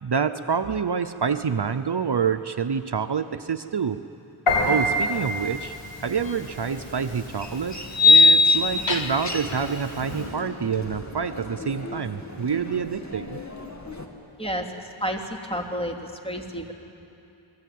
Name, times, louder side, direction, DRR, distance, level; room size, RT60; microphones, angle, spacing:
voice 1, 0.0-4.0 4.6-5.8 6.0-13.4, right 6 dB, 55° right, 8 dB, 0.8 m, -27 dB
Piano, 4.5-10.3, equal, 80° left, 6.3 m, -30 dB
Human voice, 6.0-14.1, left 2 dB, 35° left, 2.5 m, -39 dB
sound 1, 6.3-6.4 7.9-9.4, left 3 dB, 65° left, 1.4 m, -17 dB
voice 2, 14.4-16.7, equal, 10° left, 1 dB, 2.9 m, -31 dB
28.0 x 21.0 x 9.4 m, 2.7 s
wide cardioid pair, 70°, 49 cm